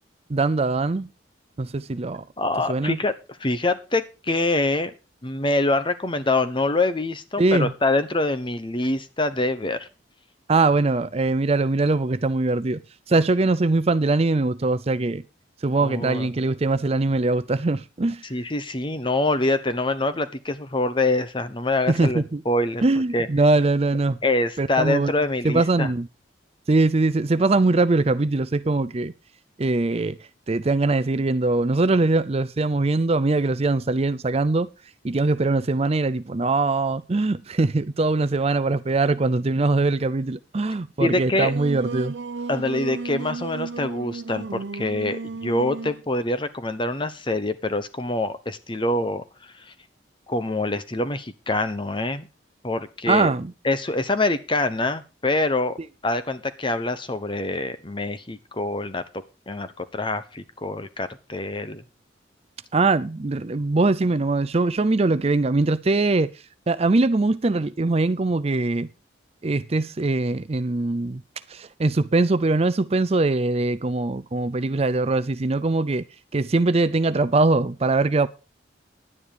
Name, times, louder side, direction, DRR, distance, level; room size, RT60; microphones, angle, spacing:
voice 1, 0.3-1.1 1.6-2.2 2.7-3.0 7.4-7.7 10.5-12.8 13.1-15.2 15.6-18.2 21.9-22.4 22.8-24.2 24.6-25.1 25.4-26.1 26.7-29.1 29.6-30.2 30.5-34.7 35.0-42.1 53.1-53.5 62.7-66.3 66.7-68.9 69.4-71.2 71.5-76.0 76.3-78.3, right 3 dB, 35° right, 0.5 m, -22 dB
voice 2, 2.4-3.1 3.4-4.9 5.2-9.9 15.8-16.3 18.3-22.8 23.1-23.3 24.2-25.9 41.0-41.5 42.5-49.2 49.7-49.8 50.3-52.3 52.6-53.3 53.6-55.8 56.0-59.0 59.5-61.8, left 2 dB, 25° left, 1.0 m, -25 dB
Singing, 41.2-46.0, right 4 dB, 65° right, 0.7 m, -33 dB
11.0 x 9.9 x 5.0 m
head